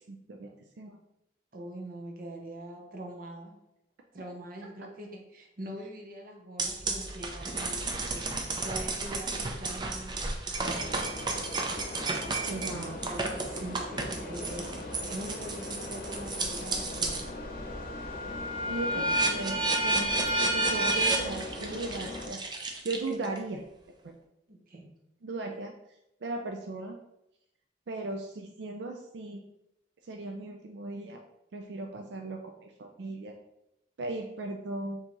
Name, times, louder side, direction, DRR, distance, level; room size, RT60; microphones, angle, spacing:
voice 1, 0.1-0.5 0.8-1.0 12.5-13.0 18.7-23.6 24.0-24.1 25.2-25.7 26.2-27.0 27.9-29.4 30.0-31.2 31.5-33.3 34.0-35.0, right 2 dB, 85° right, 2 dB, 0.5 m, -37 dB
voice 2, 1.5-3.6 4.1-10.3 13.0-13.2 13.5-17.3 18.6-19.2 24.5-24.9, right 1 dB, 55° right, 1 dB, 0.8 m, -43 dB
sound 1, 6.6-17.3 17.7-23.4, right 2 dB, 25° right, 0.5 m, -32 dB
sound 2, 10.5-22.3, left 2 dB, 55° left, 0.8 m, -40 dB
4.5 x 2.9 x 3.9 m, 0.83 s
head